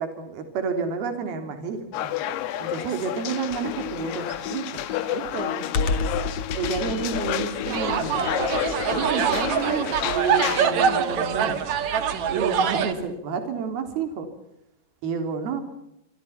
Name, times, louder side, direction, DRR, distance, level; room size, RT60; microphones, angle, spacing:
voice 1, 0.0-1.8 2.6-5.9 6.5-8.2 8.9-11.6 12.3-14.3 15.0-15.6, right 5 dB, 50° right, 7 dB, 4.8 m, -30 dB
sound 1, 1.9-10.7, left 12 dB, 70° left, 2.8 m, -31 dB
Computer keyboard, 3.5-10.4, left 5 dB, 50° left, 2.1 m, -31 dB
sound 2, 7.7-12.9, right 7 dB, 80° right, 1.6 m, -24 dB
26.0 x 25.5 x 5.9 m, 0.80 s
omnidirectional pair, 6.0 m